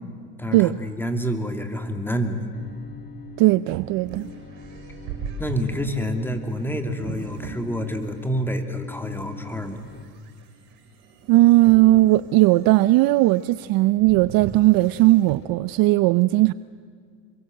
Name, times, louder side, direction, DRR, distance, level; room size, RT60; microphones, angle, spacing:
voice 1, 0.4-2.5 5.4-9.8, equal, 5° left, 2.7 m, -28 dB
Bowed string instrument, 2.5-10.0, left 6 dB, 20° left, 1.9 m, -44 dB
sound 1, 3.2-8.3 8.8-15.5, right 6 dB, 65° right, 6.3 m, -40 dB
voice 2, 3.4-4.3 11.3-16.5, right 18 dB, 50° right, 0.6 m, -17 dB
27.5 x 23.0 x 7.8 m
supercardioid pair, 115°, 47 cm